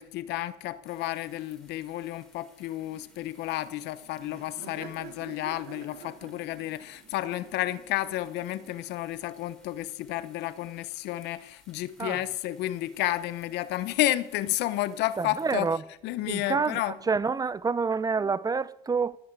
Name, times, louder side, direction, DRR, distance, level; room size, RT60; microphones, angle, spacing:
voice 1, 0.0-15.8 16.0-17.0, left 15 dB, 90° left, 1.0 m, -31 dB
sound 1, 0.9-15.6, left 1 dB, ahead, 3.1 m, -62 dB
Laughter, 2.8-9.1, right 8 dB, 85° right, 2.3 m, -50 dB
voice 2, 15.2-15.8 16.3-19.2, right 5 dB, 20° right, 0.6 m, -28 dB
19.0 x 7.2 x 8.2 m
cardioid pair, 110°, 17 cm